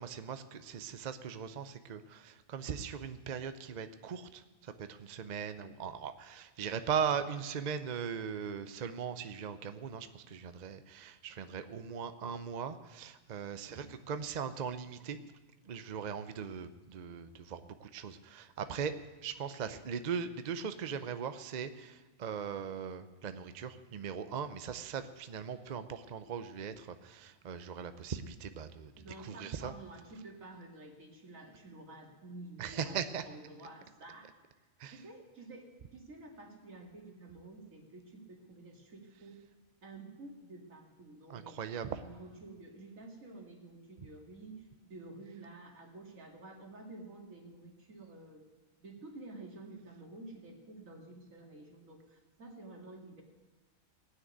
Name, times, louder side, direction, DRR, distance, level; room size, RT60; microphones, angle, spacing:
voice 1, 0.0-15.2 15.7-18.9 19.2-29.7 32.6-33.2 34.8-35.0 41.3-42.0, right 7 dB, 45° right, 10 dB, 0.6 m, -39 dB
voice 2, 13.6-13.9 29.0-34.3 34.9-39.4 39.8-41.6 41.9-48.5 48.8-53.2, right 2 dB, 75° right, 1 dB, 2.5 m, -50 dB
17.0 x 6.4 x 9.3 m, 1.2 s
omnidirectional pair, 1.4 m